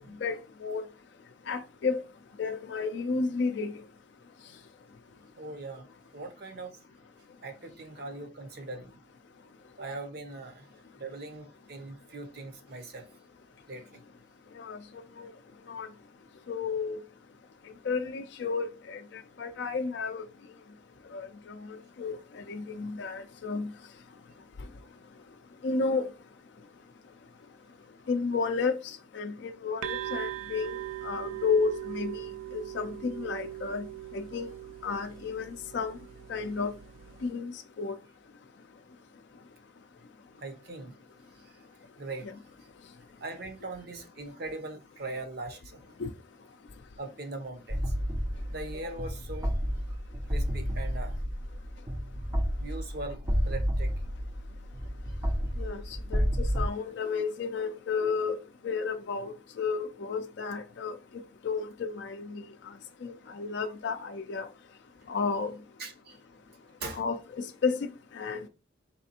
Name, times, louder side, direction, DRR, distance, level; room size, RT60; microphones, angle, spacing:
voice 1, 1.5-2.0 2.4-3.7 14.6-14.8 15.2-15.3 15.7-15.9 16.5-17.0 17.9-19.0 19.4-20.3 21.1-21.6 22.0-22.2 22.5-23.7 25.6-26.1 28.1-30.8 31.0-32.2 32.5-33.8 34.1-34.5 34.8-35.9 36.3-36.7 37.2-37.5 37.8-37.9 46.0-46.1 55.6-55.8 56.1-58.4 58.6-61.0 61.4-62.5 63.0-64.5 65.1-65.5 66.9-67.2 67.6-67.8 68.2-68.5, left 4 dB, 60° left, 0.4 m, -32 dB
voice 2, 5.4-5.9 6.1-6.8 7.4-9.0 9.8-10.7 11.0-13.1 13.7-14.0 40.4-40.9 41.4-41.5 42.0-42.3 43.2-45.9 47.0-47.9 48.5-49.5 50.3-51.2 52.6-53.9 65.8-66.2 66.8-67.0, right 2 dB, 55° right, 0.7 m, -40 dB
sound 1, 29.8-37.3, right 13 dB, 85° right, 0.3 m, -40 dB
sound 2, 47.7-56.7, equal, 15° right, 0.4 m, -31 dB
4.2 x 3.3 x 2.8 m
head